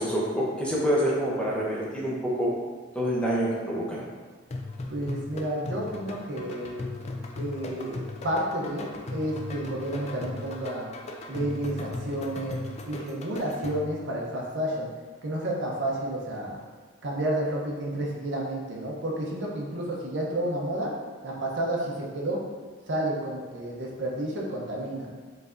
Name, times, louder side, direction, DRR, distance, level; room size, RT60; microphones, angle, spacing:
voice 1, 0.0-2.5 2.9-4.0, equal, 5° left, -5 dB, 0.7 m, -27 dB
sound 1, 4.5-14.0, left 2 dB, 35° left, 0.4 m, -37 dB
voice 2, 4.9-6.8 7.4-10.9 11.3-12.6 12.9-14.9 15.2-16.6 17.0-20.9 21.2-22.4 22.9-25.1, right 1 dB, 70° right, -2 dB, 0.7 m, -31 dB
4.7 x 3.3 x 2.5 m, 1.5 s
head